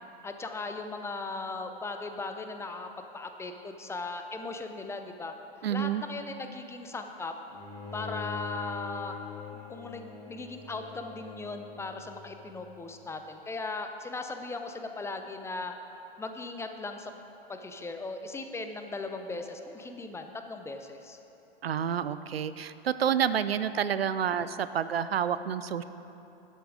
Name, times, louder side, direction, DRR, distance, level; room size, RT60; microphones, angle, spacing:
voice 1, 0.2-2.9 3.1-5.3 5.7-7.3 7.9-9.2 9.7-15.8 16.2-17.1 17.5-21.2, left 3 dB, 10° left, 6 dB, 0.5 m, -38 dB
voice 2, 5.6-6.0 21.6-25.8, right 8 dB, 80° right, 13 dB, 0.5 m, -29 dB
Bowed string instrument, 7.5-12.7, left 4 dB, 60° left, 2.3 m, -43 dB
12.0 x 7.8 x 5.0 m, 2.9 s
figure-of-eight pair, 95°, 30 cm